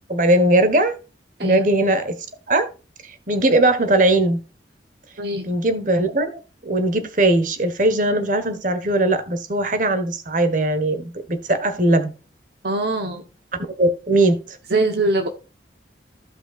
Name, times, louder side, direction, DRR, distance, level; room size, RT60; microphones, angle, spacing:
voice 1, 0.1-0.9 1.4-2.1 2.5-2.7 3.0-4.4 5.4-6.3 6.6-12.1 13.8-14.6, right 1 dB, 45° right, 8 dB, 1.3 m, -19 dB
voice 2, 5.2-5.5 12.6-13.2 14.7-15.3, right 2 dB, 60° right, 5 dB, 1.0 m, -22 dB
15.0 x 5.6 x 2.4 m, 0.33 s
head